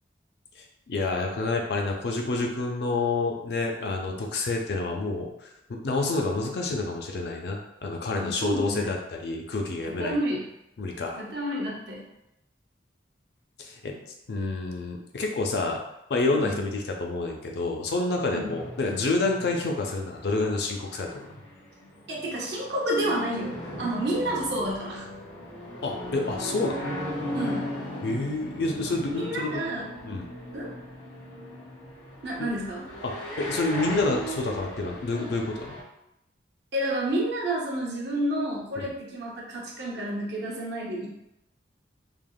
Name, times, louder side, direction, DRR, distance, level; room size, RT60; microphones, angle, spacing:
voice 1, 0.6-10.2 10.8-11.2 13.6-14.0 14.3-15.8 16.1-21.4 25.8-27.0 28.0-29.6 30.0-30.3 32.4-32.5 33.0-35.8 38.8-38.9, left 3 dB, 65° left, 1 dB, 0.4 m, -28 dB
voice 2, 8.1-8.9 9.8-10.5 11.2-12.1 16.3-16.6 18.3-18.5 22.1-25.1 27.3-27.7 29.2-29.9 30.5-30.8 32.2-32.9 36.7-41.1, right 1 dB, 70° right, -3 dB, 0.7 m, -30 dB
sound 1, 18.1-35.8, equal, 90° left, 1.4 m, -38 dB
3.3 x 2.0 x 2.3 m, 0.85 s
head